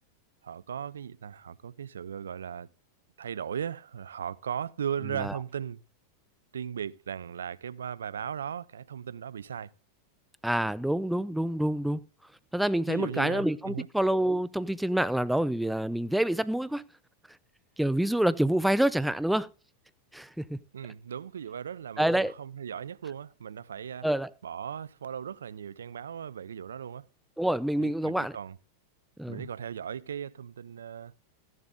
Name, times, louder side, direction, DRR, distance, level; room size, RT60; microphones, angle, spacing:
voice 1, 0.4-2.7 3.2-5.8 6.5-9.7 12.9-13.9 20.7-24.1 24.4-27.1 27.8-28.6 29.3-31.1, right 8 dB, 85° right, 0.4 m, -37 dB
voice 2, 10.4-12.0 12.5-16.8 17.8-19.5 20.1-20.6 22.0-22.3 24.0-24.3 27.4-28.4 29.2-29.4, right 1 dB, 5° right, 0.6 m, -27 dB
14.5 x 10.5 x 2.6 m
hypercardioid pair, 105°, 0 cm